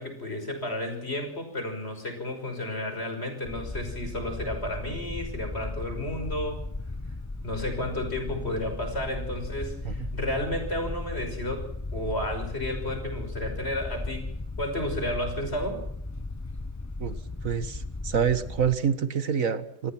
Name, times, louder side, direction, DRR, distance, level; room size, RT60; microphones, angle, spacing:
voice 1, 0.0-6.7 7.4-14.3 14.6-15.9, left 1 dB, 50° left, 6 dB, 6.2 m, -32 dB
sound 1, 3.4-18.8, left 2 dB, 15° left, 0.8 m, -36 dB
voice 2, 17.4-19.9, right 7 dB, 80° right, 11 dB, 2.0 m, -27 dB
27.5 x 20.0 x 6.0 m, 0.69 s
omnidirectional pair, 1.4 m